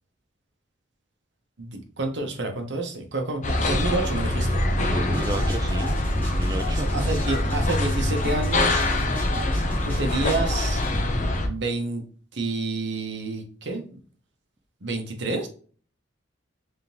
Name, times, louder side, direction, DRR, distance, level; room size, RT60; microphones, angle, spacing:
voice 1, 1.6-4.6 6.7-8.9 9.8-10.8 11.4-12.0 12.3-13.8 14.8-15.5, right 2 dB, 65° right, 4 dB, 1.0 m, -29 dB
sound 1, 3.4-11.5, left 1 dB, 40° left, 0.7 m, -24 dB
voice 2, 4.9-6.9, right 2 dB, 20° right, 5 dB, 0.3 m, -34 dB
sound 2, 5.1-11.0, right 1 dB, 10° left, 1.4 m, -39 dB
3.6 x 3.5 x 2.8 m, 0.41 s
head